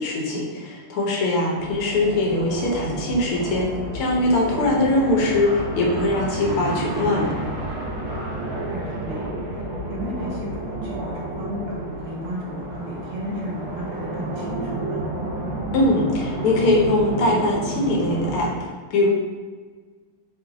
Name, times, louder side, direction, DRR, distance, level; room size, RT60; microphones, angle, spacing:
voice 1, 0.0-7.3 15.7-19.1, left 2 dB, 80° left, -2 dB, 1.7 m, -22 dB
sound 1, 1.5-18.5, right 2 dB, 80° right, 2.0 m, -30 dB
voice 2, 8.7-9.2 9.9-15.1, equal, 65° right, -5 dB, 1.5 m, -34 dB
4.6 x 2.5 x 3.9 m, 1.5 s
omnidirectional pair, 2.4 m